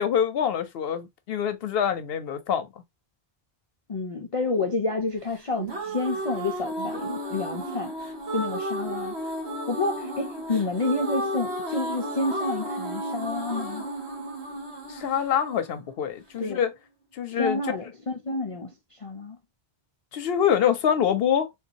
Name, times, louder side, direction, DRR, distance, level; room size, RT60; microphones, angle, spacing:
voice 1, 0.0-2.7 14.9-16.7 17.2-17.6 20.1-21.5, left 8 dB, 70° left, 0.8 m, -25 dB
voice 2, 3.9-7.9 8.3-9.2 9.7-13.8 16.4-16.6 17.3-19.4, left 3 dB, 45° left, 0.5 m, -29 dB
sound 1, 5.3-16.4, right 1 dB, 80° right, 1.6 m, -33 dB
3.6 x 2.6 x 2.8 m
omnidirectional pair, 1.1 m